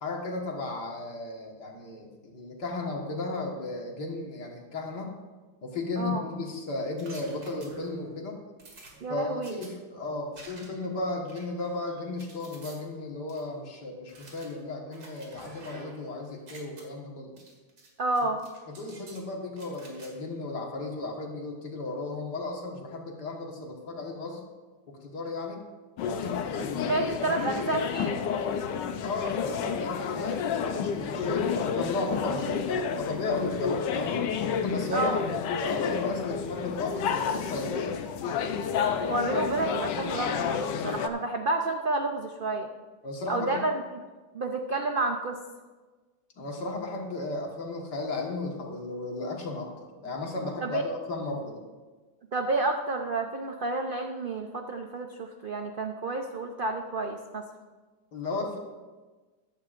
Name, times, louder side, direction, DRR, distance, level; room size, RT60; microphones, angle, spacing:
voice 1, 0.0-5.2 5.6-8.4 9.1-17.4 18.7-24.4 24.9-25.6 26.1-26.9 29.0-34.3 34.6-37.9 43.0-43.6 46.4-51.6 58.1-58.6, left 2 dB, 75° left, 0 dB, 2.2 m, -35 dB
sound 1, 7.0-8.1 8.6-9.7 10.3-10.9 11.3-12.8 13.3-13.4 14.1-16.1 16.3-16.8 17.4-17.9 18.2-19.2 19.6-20.1, right 2 dB, 85° right, 2.8 m, -50 dB
voice 2, 9.0-9.6 18.0-18.4 26.8-28.2 34.9-35.2 39.1-42.7 43.3-43.7 44.3-45.4 50.6-50.8 52.3-57.4, right 2 dB, 65° right, 4 dB, 0.5 m, -30 dB
sound 2, 26.0-41.1, left 7 dB, 90° left, 1.4 m, -30 dB
14.5 x 11.5 x 2.5 m, 1.3 s
omnidirectional pair, 1.9 m